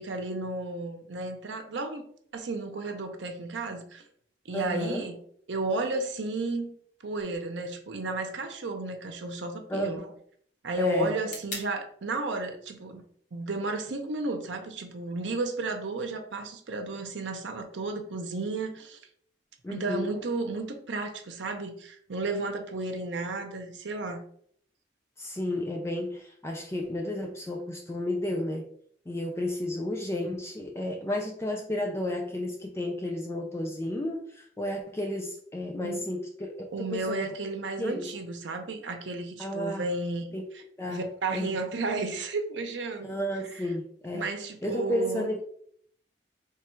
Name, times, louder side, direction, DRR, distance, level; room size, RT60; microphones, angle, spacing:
voice 1, 0.0-2.0 2.3-4.0 4.5-5.2 5.5-6.7 7.0-10.1 10.6-13.0 13.3-19.0 19.7-24.2 35.8-36.0 36.7-40.4 40.8-43.1 43.4-43.7 44.1-45.3, right 3 dB, 90° right, 5 dB, 0.6 m, -33 dB
voice 2, 4.5-5.1 9.7-10.0 10.8-11.1 19.6-20.1 25.2-28.6 29.1-36.5 36.8-37.3 37.8-38.1 39.4-39.9 40.3-40.5 40.8-41.1 41.3-41.6 43.0-44.3 44.6-45.4, left 1 dB, 15° left, 1 dB, 0.3 m, -32 dB
sound 1, 7.2-15.2, left 2 dB, 45° left, 1.1 m, -49 dB
3.3 x 2.3 x 4.3 m, 0.63 s
head